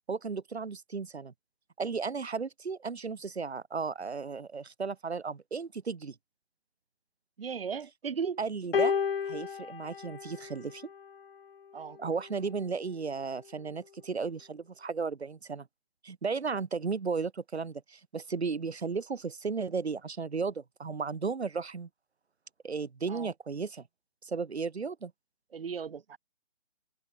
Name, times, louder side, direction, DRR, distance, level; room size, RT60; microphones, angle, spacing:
voice 1, 0.1-1.3 1.8-6.2 8.4-10.9 12.0-15.7 16.0-21.9 22.6-23.8 24.2-25.1, right 5 dB, 85° right, 2.7 m, -35 dB
voice 2, 7.4-8.4 11.7-12.0 23.1-23.3 25.5-26.2, right 6 dB, 65° right, 1.3 m, -36 dB
sound 1, 8.7-11.2 12.2-12.4, left 7 dB, 60° left, 0.8 m, -32 dB
hypercardioid pair, 170°, 32 cm